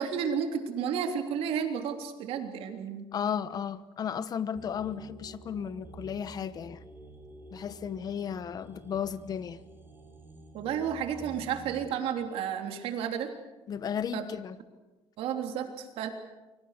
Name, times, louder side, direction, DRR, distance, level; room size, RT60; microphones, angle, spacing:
voice 1, 0.0-3.1 10.5-13.3 14.1-14.2 15.2-16.1, right 8 dB, 70° right, 3.3 m, -32 dB
voice 2, 3.1-6.8 7.5-9.6 13.7-14.6, left 8 dB, 40° left, 1.1 m, -34 dB
sound 1, 4.5-11.8, right 2 dB, 20° right, 5.1 m, -50 dB
29.0 x 24.5 x 6.7 m
cardioid pair, 140°, 10 cm